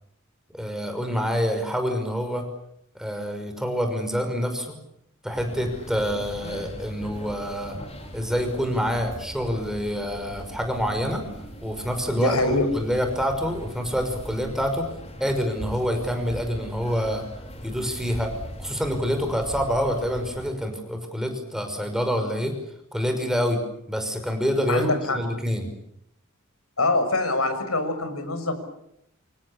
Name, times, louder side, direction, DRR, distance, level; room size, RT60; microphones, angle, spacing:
voice 1, 0.5-2.4 2.9-4.8 5.2-7.8 8.1-11.2 11.6-12.4 12.7-14.9 15.2-17.2 17.6-18.3 18.6-22.5 22.9-23.6 23.9-25.7, equal, ahead, 5 dB, 5.8 m, -26 dB
sound 1, 5.3-20.5, equal, 30° left, 5.5 m, -39 dB
voice 2, 12.2-12.7 24.7-25.2 26.8-28.5, left 2 dB, 90° left, 9 dB, 6.4 m, -24 dB
28.0 x 27.0 x 7.2 m, 0.76 s
head